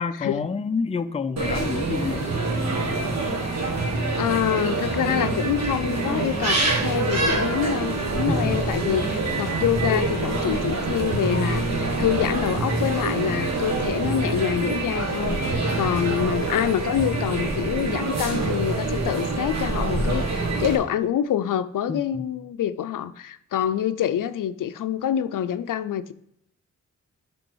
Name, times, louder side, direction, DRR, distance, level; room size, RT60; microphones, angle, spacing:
voice 1, 0.0-2.5 8.3-8.7 21.9-22.3, left 5 dB, 20° left, 9 dB, 0.4 m, -29 dB
sound 1, 1.4-20.7, right 3 dB, 55° right, 1.6 m, -25 dB
voice 2, 4.2-26.1, left 10 dB, 80° left, 12 dB, 0.5 m, -26 dB
10.0 x 3.5 x 4.6 m, 0.72 s
cardioid pair, 75°, 32 cm